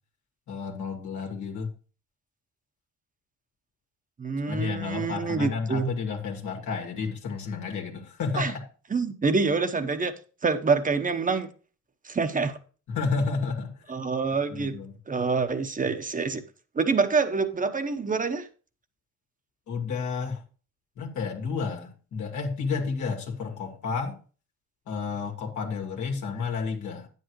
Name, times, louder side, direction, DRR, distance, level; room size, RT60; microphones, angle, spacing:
voice 1, 0.5-1.7 4.4-8.6 12.9-13.8 14.5-15.0 19.7-20.4 21.0-24.2 24.9-27.1, left 5 dB, 75° left, 1.8 m, -31 dB
voice 2, 4.2-5.9 8.3-8.5 8.9-10.1 10.4-11.5 12.0-12.6 13.9-14.8 15.1-16.4 16.7-18.5, right 4 dB, 25° right, 1.0 m, -26 dB
9.4 x 8.3 x 3.1 m
cardioid pair, 90°, 30 cm